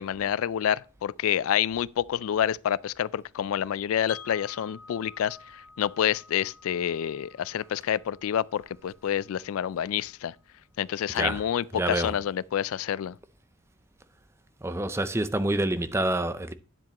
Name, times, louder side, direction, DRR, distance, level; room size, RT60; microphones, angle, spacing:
voice 1, 0.0-10.3 10.8-13.1, left 9 dB, 80° left, 0.3 m, -28 dB
Wind chime, 4.1-10.1, left 5 dB, 60° left, 2.2 m, -50 dB
voice 2, 11.1-11.5 11.7-12.2 14.6-16.5, right 1 dB, 10° right, 0.5 m, -27 dB
9.9 x 7.4 x 2.9 m
head